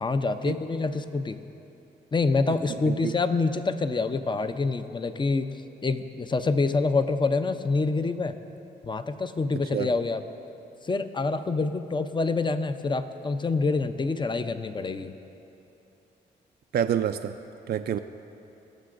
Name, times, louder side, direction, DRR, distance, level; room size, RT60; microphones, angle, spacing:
voice 1, 0.0-1.4 2.1-5.5 5.8-8.4 8.8-10.2 10.8-15.1, left 3 dB, 25° left, 10 dB, 0.6 m, -26 dB
voice 2, 16.7-17.4 17.7-18.0, right 9 dB, 60° right, 8 dB, 0.4 m, -27 dB
22.0 x 7.4 x 2.6 m, 2.9 s
supercardioid pair, 55°, 19 cm